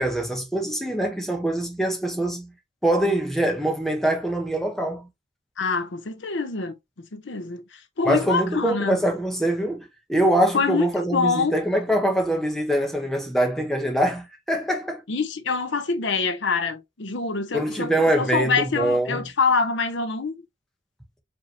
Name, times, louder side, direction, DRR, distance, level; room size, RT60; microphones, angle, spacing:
voice 1, 0.0-2.5 2.8-5.1 8.1-15.0 17.5-19.2, right 1 dB, ahead, 0.9 m, -24 dB
voice 2, 5.6-9.0 10.5-11.5 15.1-20.4, left 4 dB, 75° left, 0.7 m, -25 dB
5.2 x 2.9 x 2.8 m
head